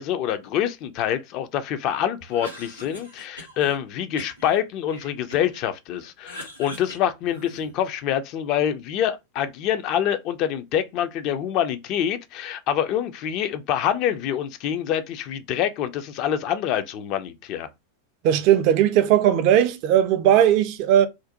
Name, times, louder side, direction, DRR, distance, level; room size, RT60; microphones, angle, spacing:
voice 1, 0.0-17.7, left 10 dB, 40° left, 0.3 m, -26 dB
Cough, 2.2-3.8 4.2-5.6 6.0-7.9, left 1 dB, 90° left, 0.9 m, -42 dB
voice 2, 18.2-21.1, right 10 dB, 45° right, 0.3 m, -18 dB
2.5 x 2.1 x 2.6 m
figure-of-eight pair, 90°, 0 cm